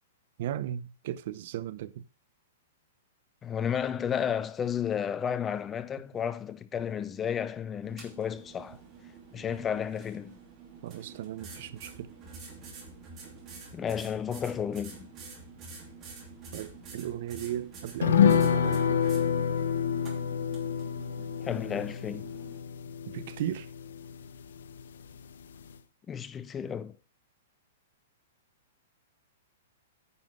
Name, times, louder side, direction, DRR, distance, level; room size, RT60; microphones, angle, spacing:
voice 1, 0.4-2.0 10.8-12.1 16.5-19.0 23.1-23.7, right 11 dB, 55° right, 0.7 m, -36 dB
voice 2, 3.4-8.8 9.3-10.4 13.7-15.1 21.4-22.3 26.1-26.9, left 8 dB, 15° left, 0.5 m, -32 dB
sound 1, 7.8-22.6, right 4 dB, 30° right, 2.9 m, -48 dB
sound 2, 18.0-24.8 25.1-25.2 25.5-25.7, left 8 dB, 80° left, 0.7 m, -28 dB
9.8 x 5.6 x 5.3 m
hypercardioid pair, 145°, 0 cm